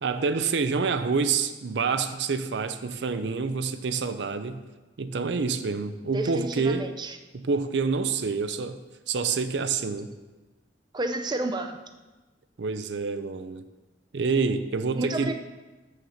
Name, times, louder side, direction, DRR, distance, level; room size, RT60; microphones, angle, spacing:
voice 1, 0.0-4.6 5.0-6.9 7.3-8.8 9.1-10.1 12.6-13.6 14.1-15.3, right 4 dB, 70° right, 11 dB, 0.5 m, -27 dB
voice 2, 6.1-7.2 10.9-11.8 14.9-15.3, right 2 dB, 25° right, 6 dB, 0.5 m, -30 dB
7.2 x 6.5 x 6.4 m, 1.2 s
head